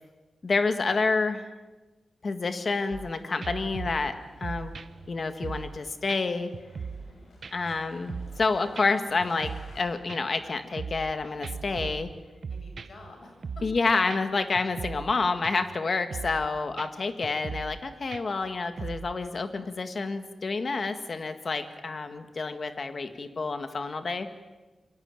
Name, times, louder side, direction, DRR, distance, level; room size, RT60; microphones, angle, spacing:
voice 1, 0.4-1.5 2.2-4.8 5.1-6.5 7.5-12.1 13.6-24.3, left 4 dB, 40° left, 8 dB, 1.8 m, -29 dB
Male speech man speaking, 2.9-9.8, left 2 dB, 90° left, 7.2 m, -56 dB
sound 1, 2.9-3.1 3.4-5.8 6.1-6.2 6.5-7.1 7.4-8.5 8.8-8.9 9.2-9.8 10.1-11.1 11.4-13.1 13.4-13.8 14.1-14.2 14.5-15.1 15.4-15.8 16.1-16.5 16.8-16.9 17.2-17.8 18.1-19.1, right 5 dB, 50° right, 0.8 m, -39 dB
voice 2, 6.9-7.2 12.5-13.7 16.5-16.8, left 2 dB, 60° left, 3 dB, 7.7 m, -50 dB
27.5 x 23.5 x 9.0 m, 1.2 s
wide cardioid pair, 175°, 0 cm